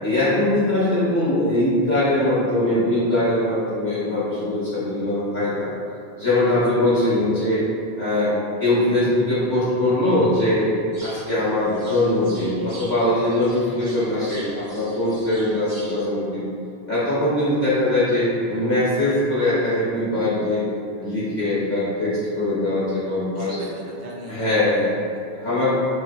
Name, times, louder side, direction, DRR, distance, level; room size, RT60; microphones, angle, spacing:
voice 1, 0.0-5.7 6.1-7.6 8.0-8.3 8.6-10.7 11.0-16.5 16.9-20.6 21.0-23.5 24.3-24.9 25.4-25.7, left 1 dB, 40° left, -13 dB, 1.4 m, -21 dB
voice 2, 6.6-7.1 23.3-25.2, right 1 dB, 90° right, -4 dB, 1.0 m, -37 dB
sound 1, 10.9-16.1, right 2 dB, 40° right, 0.4 m, -43 dB
5.3 x 2.1 x 2.3 m, 2.6 s
omnidirectional pair, 1.2 m